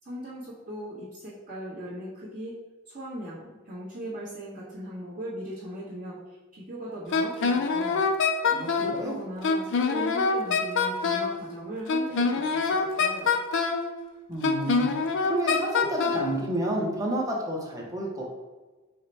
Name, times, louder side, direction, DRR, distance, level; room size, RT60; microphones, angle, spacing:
voice 1, 0.0-2.6 2.8-8.0 8.5-13.4, right 1 dB, 40° right, -11 dB, 1.2 m, -39 dB
Wind instrument woodwind instrument, 7.1-9.0 9.4-11.4 11.9-13.9 14.4-16.3, left 5 dB, 60° left, 0.4 m, -24 dB
voice 2, 8.5-9.1 14.3-14.9 15.2-18.3, right 1 dB, 15° right, -2 dB, 0.8 m, -30 dB
4.8 x 2.2 x 4.0 m, 1.3 s
head